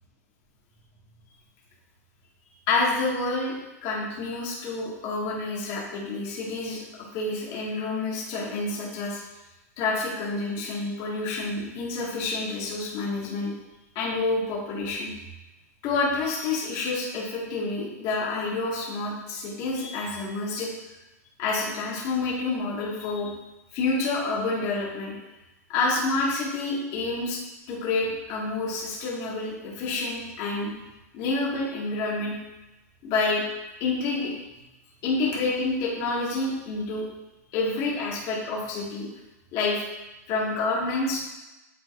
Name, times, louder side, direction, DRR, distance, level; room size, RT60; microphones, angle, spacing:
voice 1, 2.7-6.8 7.1-9.2 9.8-13.5 14.0-15.1 15.8-20.7 21.4-23.3 23.7-25.1 25.7-27.4 27.7-30.7 31.1-32.3 33.0-33.4 33.8-34.3 35.0-37.1 37.5-39.1 39.5-39.8 40.3-41.2, left 3 dB, 45° left, -5 dB, 2.1 m, -28 dB
9.5 x 3.9 x 2.7 m, 1.0 s
hypercardioid pair, 130°, 9 cm